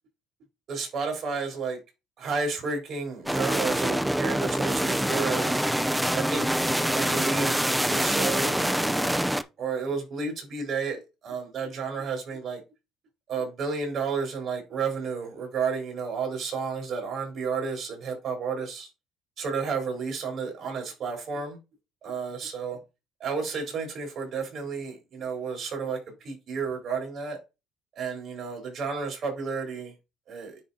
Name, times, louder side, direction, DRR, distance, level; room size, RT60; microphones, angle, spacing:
voice 1, 0.7-1.8 2.2-5.6 6.1-6.5 6.9-7.6 7.9-9.3 9.6-12.6 13.3-18.9 19.4-21.6 22.0-22.8 23.2-27.4 28.0-29.9 30.3-30.6, right 5 dB, 60° right, 3.8 m, -31 dB
sound 1, 3.3-9.4, right 1 dB, 5° right, 0.5 m, -25 dB
9.9 x 3.4 x 2.7 m
cardioid pair, 90°, 0 cm